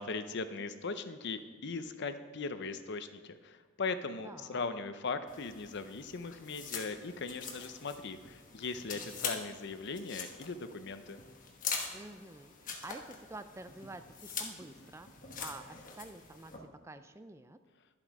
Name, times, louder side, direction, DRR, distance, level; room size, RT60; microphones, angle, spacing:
voice 1, 0.0-11.2, left 4 dB, 55° left, 10 dB, 0.6 m, -39 dB
voice 2, 4.2-4.6 11.9-17.6, right 2 dB, 15° right, 10 dB, 0.3 m, -49 dB
sound 1, 5.3-16.6, left 5 dB, 40° left, 1.2 m, -43 dB
11.0 x 7.6 x 4.7 m, 1.4 s
head